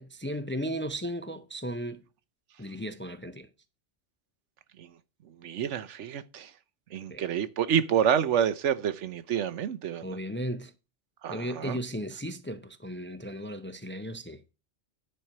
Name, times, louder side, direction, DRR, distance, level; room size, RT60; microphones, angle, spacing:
voice 1, 0.0-2.0 2.6-3.5 7.1-7.2 10.0-10.7 11.3-14.4, equal, 15° left, 0.4 m, -35 dB
voice 2, 5.2-6.5 6.9-10.2 11.2-11.8, right 8 dB, 85° right, 1.1 m, -28 dB
10.0 x 4.5 x 6.5 m
omnidirectional pair, 1.2 m